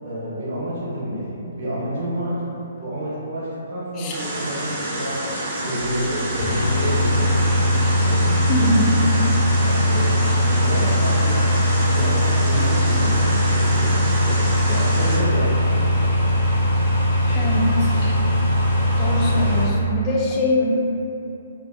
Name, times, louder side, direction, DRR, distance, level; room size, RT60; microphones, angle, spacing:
voice 1, 0.0-2.4 2.8-7.3 8.0-9.1 9.6-11.5 11.9-14.4 14.6-15.9, right 1 dB, 65° right, -8 dB, 0.8 m, -29 dB
sound 1, 4.1-15.2, right 1 dB, 30° right, 0.6 m, -29 dB
sound 2, 5.8-12.9, right 3 dB, 75° left, 0.7 m, -32 dB
sound 3, 6.4-19.6, left 1 dB, 50° left, 1.2 m, -20 dB
voice 2, 8.5-9.1 17.3-17.9 19.0-20.6, left 1 dB, 30° left, -2 dB, 0.4 m, -22 dB
2.4 x 2.3 x 2.3 m, 2.8 s
figure-of-eight pair, 135°, 0 cm